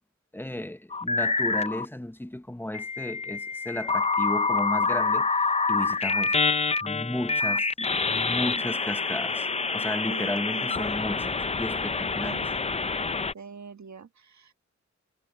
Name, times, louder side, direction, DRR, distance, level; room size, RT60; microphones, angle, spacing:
voice 1, 0.3-6.4 6.8-7.7 8.1-9.5 9.7-12.4, left 1 dB, 5° left, 0.8 m, -34 dB
sound 1, 0.9-1.9 2.7-13.3, left 4 dB, 25° left, 0.4 m, -27 dB
voice 2, 10.1-10.9 12.2-12.5 13.3-14.5, right 7 dB, 70° right, 1.4 m, -43 dB
wide cardioid pair, 95°, 29 cm